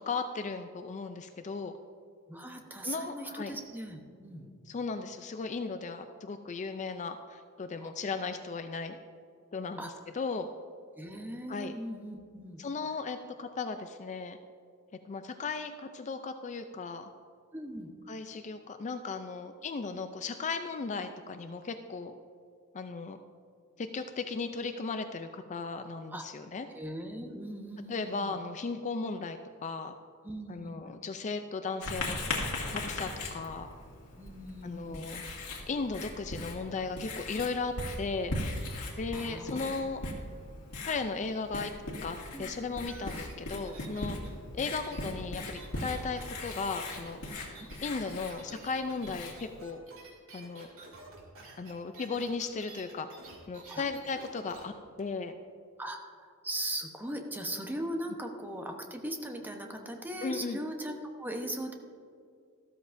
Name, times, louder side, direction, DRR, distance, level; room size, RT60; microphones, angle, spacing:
voice 1, 0.0-1.7 2.8-3.5 4.7-9.0 9.5-10.5 11.5-11.7 12.6-14.4 15.0-17.1 18.1-22.1 22.7-23.2 23.8-26.7 27.9-30.0 30.5-32.4 32.7-33.7 34.6-35.2 35.7-38.3 39.0-40.0 40.9-41.7 42.0-44.2 44.5-47.2 47.8-49.8 50.3-50.7 51.6-53.1 53.5-54.7 55.0-55.3 60.2-60.6, left 4 dB, 35° left, 8 dB, 0.4 m, -36 dB
voice 2, 2.3-4.5 7.8-7.9 9.8-9.9 11.0-12.6 17.5-17.9 26.1-26.2 26.7-28.3 30.2-30.8 34.2-35.0 39.1-39.7 42.3-42.5 47.6-47.7 53.7-53.8 55.8-61.7, right 1 dB, 10° right, 3 dB, 0.9 m, -39 dB
Writing, 31.8-49.6, left 2 dB, 75° left, 2.1 m, -39 dB
sound 1, 42.8-54.6 55.0-55.1, right 2 dB, 65° right, 2.5 m, -51 dB
13.5 x 13.0 x 2.6 m, 2.3 s
head